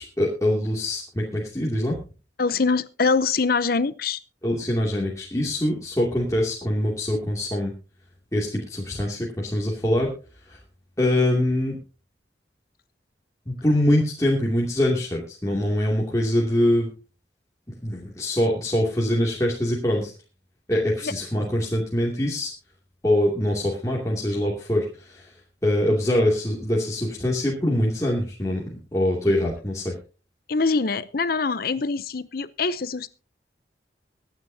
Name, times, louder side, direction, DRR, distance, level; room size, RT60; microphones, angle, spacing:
voice 1, 0.0-2.0 4.4-7.7 8.3-10.1 10.5-10.6 11.0-11.8 13.5-16.9 17.8-20.1 20.7-22.5 23.0-25.3 25.6-28.6 28.9-30.0, left 1 dB, 15° left, -4 dB, 2.6 m, -23 dB
voice 2, 2.4-4.2 30.5-33.1, left 4 dB, 55° left, 16 dB, 0.7 m, -24 dB
23.5 x 9.2 x 2.8 m, 0.34 s
head